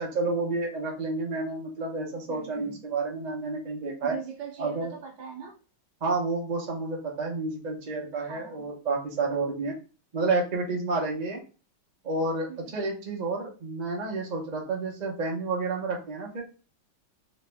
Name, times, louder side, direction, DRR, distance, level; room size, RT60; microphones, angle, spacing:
voice 1, 0.0-4.1 4.6-4.9 6.0-9.7 10.1-11.4 12.0-12.5 12.7-16.4, right 3 dB, 50° right, -1 dB, 0.5 m, -30 dB
voice 2, 2.3-2.8 4.0-5.6 8.1-8.6 12.5-12.8, right 6 dB, 70° right, 2 dB, 1.5 m, -41 dB
3.3 x 3.0 x 3.3 m, 0.34 s
omnidirectional pair, 2.3 m